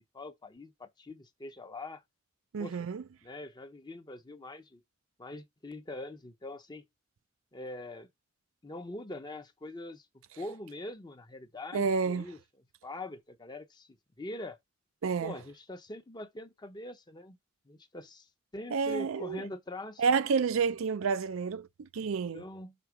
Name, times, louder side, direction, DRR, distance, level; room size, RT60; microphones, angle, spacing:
voice 1, 0.0-2.0 2.6-2.9 3.2-4.8 5.2-6.8 7.5-8.1 8.6-12.4 12.8-14.6 15.2-17.4 17.7-18.3 18.5-20.0 22.0-22.7, left 1 dB, 20° left, 0.7 m, -43 dB
voice 2, 2.5-3.0 11.7-12.3 15.0-15.3 18.7-19.4 20.0-22.4, right 5 dB, 85° right, 0.4 m, -29 dB
6.1 x 3.6 x 4.8 m
head